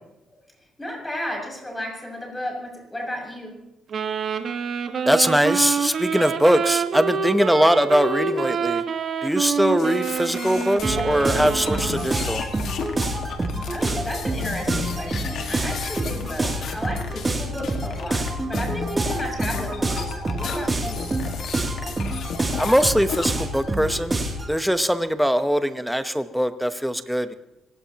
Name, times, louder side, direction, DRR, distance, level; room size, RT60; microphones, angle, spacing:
voice 1, 0.8-3.6 13.7-21.1, left 1 dB, 15° left, 0 dB, 6.6 m, -33 dB
Wind instrument woodwind instrument, 3.9-12.4, right 6 dB, 55° right, 1.4 m, -27 dB
voice 2, 5.1-8.8 9.2-12.4 22.6-24.2 24.5-27.3, equal, ahead, 10 dB, 0.9 m, -21 dB
sound 1, 9.8-23.3, left 6 dB, 70° left, 1.8 m, -34 dB
sound 2, 10.8-24.5, right 1 dB, 25° right, 2.8 m, -27 dB
26.0 x 17.5 x 3.0 m, 0.88 s
cardioid pair, 90°, 0 cm